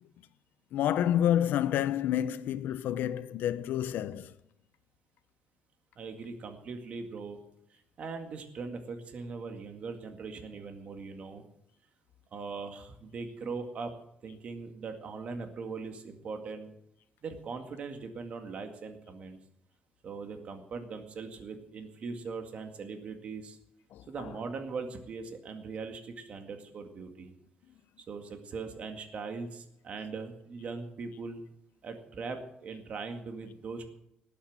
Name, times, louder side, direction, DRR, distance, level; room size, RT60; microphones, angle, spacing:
voice 1, 0.7-4.3 23.9-24.4, left 11 dB, 80° left, 0.8 m, -29 dB
voice 2, 6.0-7.4 8.0-11.4 12.3-13.9 14.2-16.7 17.2-19.4 20.0-23.6 24.1-27.3 28.1-31.4 31.8-33.9, right 4 dB, 45° right, 2.0 m, -40 dB
18.5 x 8.7 x 7.4 m
cardioid pair, 170°, 3 cm